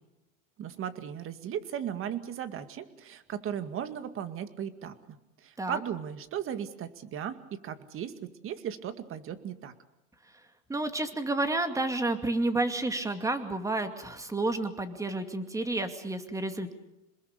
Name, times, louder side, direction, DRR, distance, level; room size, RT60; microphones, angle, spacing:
voice 1, 0.6-9.7, right 9 dB, 30° right, 11 dB, 2.1 m, -37 dB
voice 2, 10.7-16.7, right 2 dB, 10° right, 8 dB, 2.4 m, -30 dB
27.5 x 20.5 x 6.7 m, 0.94 s
supercardioid pair, 130°, 41 cm